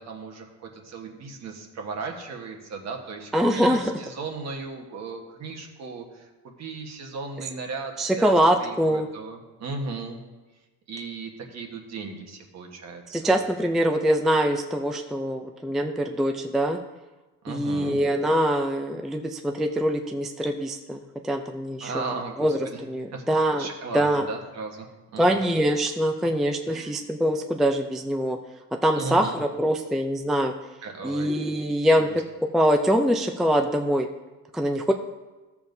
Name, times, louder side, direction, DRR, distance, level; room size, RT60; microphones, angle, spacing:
voice 1, 0.0-10.2 10.9-13.3 17.4-18.0 21.8-22.8 23.1-24.9 25.1-25.4 26.7-26.9 28.9-29.4 30.8-31.4 32.0-32.2, right 4 dB, 50° right, 3 dB, 1.3 m, -36 dB
voice 2, 3.3-3.9 8.0-9.1 13.1-16.8 17.5-22.0 22.4-23.7 23.9-24.2 25.2-28.4 28.8-30.5 31.0-32.1 32.5-34.1 34.5-34.9, equal, ahead, 4 dB, 0.3 m, -23 dB
13.5 x 7.2 x 2.7 m, 1.2 s
cardioid pair, 135°, 34 cm